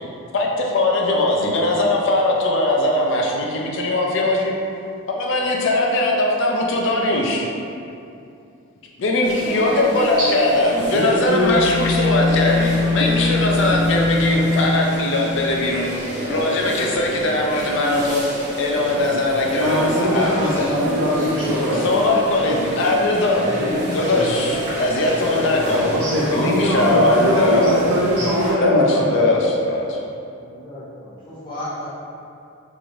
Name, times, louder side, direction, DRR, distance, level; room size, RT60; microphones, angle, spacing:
voice 1, 0.3-4.5 5.1-7.5 9.0-15.9 16.3-18.2 18.6-20.7 21.8-23.5 23.9-25.9 26.3-27.9 28.6-30.0, left 2 dB, 60° left, -1 dB, 0.4 m, -20 dB
sound 1, 9.2-28.5, equal, 35° right, 0.6 m, -29 dB
voice 2, 10.9-11.5 19.6-22.2 25.8-29.1, equal, 90° right, -7 dB, 0.5 m, -21 dB
sound 2, 11.4-15.6, left 3 dB, 10° right, 0.9 m, -21 dB
voice 3, 30.4-31.9, left 1 dB, 25° left, -11 dB, 0.8 m, -34 dB
3.0 x 2.7 x 2.5 m, 2.6 s
head